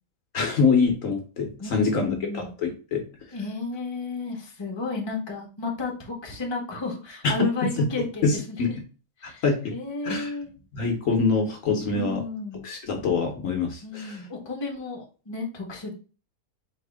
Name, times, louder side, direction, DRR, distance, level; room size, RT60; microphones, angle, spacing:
voice 1, 0.3-3.0 7.2-7.3 7.8-7.9 8.2-8.7 9.2-9.7 10.0-10.3 10.7-12.2 12.6-14.2, left 4 dB, 60° left, 3 dB, 1.3 m, -25 dB
voice 2, 1.6-2.5 3.3-8.8 9.2-9.4 9.7-10.5 11.9-12.6 13.8-15.9, left 4 dB, 20° left, 0 dB, 1.0 m, -32 dB
4.3 x 3.1 x 3.4 m, 0.35 s
omnidirectional pair, 1.6 m